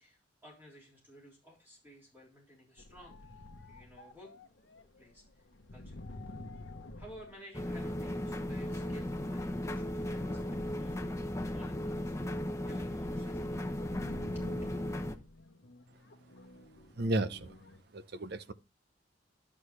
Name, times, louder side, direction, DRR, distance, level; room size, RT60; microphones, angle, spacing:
voice 1, 0.0-5.5 5.7-6.0 7.0-12.1 12.7-14.5, equal, 10° right, 3.6 m, -56 dB
sound 1, 2.8-8.1 8.9-17.8, left 2 dB, 70° left, 0.9 m, -51 dB
sound 2, 7.5-15.2, left 1 dB, 15° left, 0.7 m, -36 dB
voice 2, 17.0-17.5 17.9-18.5, right 2 dB, 60° right, 0.6 m, -33 dB
11.5 x 6.3 x 3.2 m
head